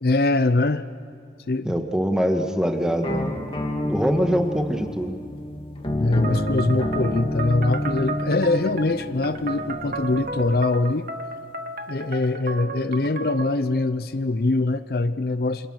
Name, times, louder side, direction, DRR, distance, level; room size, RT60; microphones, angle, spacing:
voice 1, 0.0-0.9 1.5-1.7 5.9-11.1 11.9-15.7, left 2 dB, 60° left, 12 dB, 0.6 m, -23 dB
voice 2, 1.6-3.4 3.8-5.2, equal, 5° right, 4 dB, 1.6 m, -23 dB
sound 1, 3.0-10.5, left 1 dB, 30° left, 2.4 m, -29 dB
sound 2, 6.2-13.6, right 3 dB, 50° right, 1.5 m, -34 dB
28.0 x 26.5 x 6.4 m, 2.1 s
head